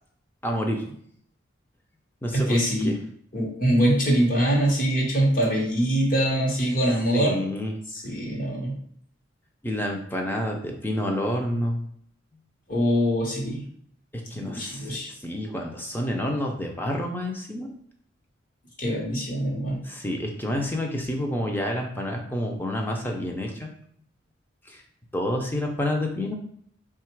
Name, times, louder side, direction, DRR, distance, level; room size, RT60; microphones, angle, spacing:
voice 1, 0.4-0.8 2.2-3.0 7.1-7.8 9.6-11.8 14.1-17.7 19.8-23.7 24.6-24.8 25.1-26.3, left 1 dB, 10° left, 1 dB, 0.5 m, -29 dB
voice 2, 2.3-2.9 3.3-7.4 7.9-8.8 12.7-13.6 14.3-15.1 18.8-19.8, equal, 45° left, -2 dB, 1.0 m, -23 dB
3.6 x 2.4 x 4.5 m, 0.66 s
head